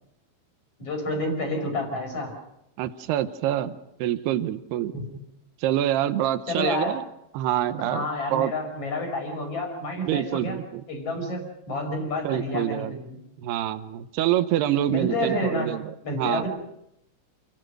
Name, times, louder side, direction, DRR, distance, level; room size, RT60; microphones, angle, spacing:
voice 1, 0.8-2.3 4.9-5.1 6.5-7.0 7.8-10.6 10.9-13.2 14.9-15.7 16.0-16.5, left 1 dB, 30° left, 4 dB, 5.8 m, -29 dB
voice 2, 2.8-4.9 5.6-7.0 7.3-8.5 10.0-10.8 12.2-12.9 13.4-15.9 16.2-16.5, right 12 dB, 80° right, 10 dB, 2.4 m, -26 dB
29.0 x 18.5 x 6.4 m, 0.82 s
omnidirectional pair, 5.9 m